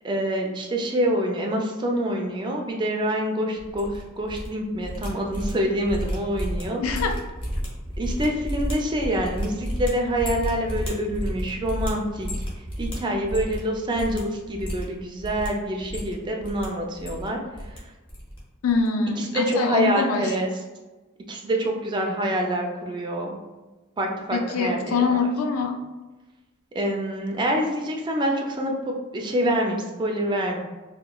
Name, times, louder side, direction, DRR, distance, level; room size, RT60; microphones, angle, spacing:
voice 1, 0.0-6.8 8.0-12.3 12.8-17.4 19.2-20.5 21.3-23.4 24.0-25.2 26.7-30.6, equal, 20° right, 1 dB, 0.3 m, -26 dB
sound 1, 3.6-4.5 4.7-13.7 13.9-14.2 14.5-15.5 15.8-16.7 16.9-17.8 18.1-18.4 18.6-18.9, equal, 25° left, 0.6 m, -31 dB
voice 2, 6.8-7.2 18.6-20.3 24.3-25.7, left 4 dB, 70° left, 4 dB, 0.4 m, -24 dB
2.9 x 2.1 x 2.3 m, 1.2 s
head